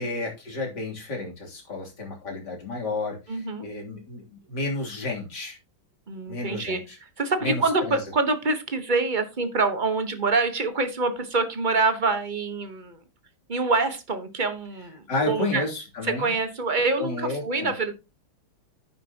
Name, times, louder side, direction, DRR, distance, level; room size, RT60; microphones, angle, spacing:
voice 1, 0.0-5.6 6.3-7.0 7.4-8.0 15.1-16.3 17.0-17.7, left 2 dB, 55° left, -1 dB, 3.8 m, -31 dB
voice 2, 3.3-3.7 6.1-13.0 13.5-15.6 16.0-17.9, right 3 dB, 30° right, 9 dB, 1.1 m, -26 dB
10.5 x 9.2 x 2.9 m, 0.28 s
omnidirectional pair, 2.2 m